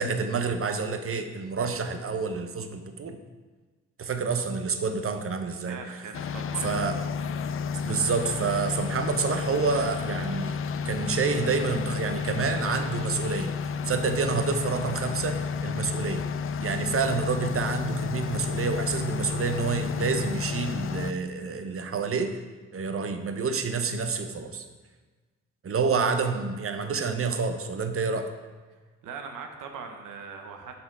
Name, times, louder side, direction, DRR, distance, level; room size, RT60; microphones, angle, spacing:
voice 1, 0.0-3.2 4.0-5.8 6.6-7.0 7.8-10.6 10.8-13.5 13.8-16.2 16.6-22.3 22.7-24.6 25.6-28.3, right 5 dB, 40° right, 7 dB, 0.8 m, -28 dB
voice 2, 5.7-6.7 29.0-30.8, right 5 dB, 70° right, 4 dB, 0.9 m, -40 dB
sound 1, 6.1-21.1, left 6 dB, 40° left, 0.4 m, -31 dB
5.8 x 4.0 x 5.4 m, 1.3 s
hypercardioid pair, 45°, 33 cm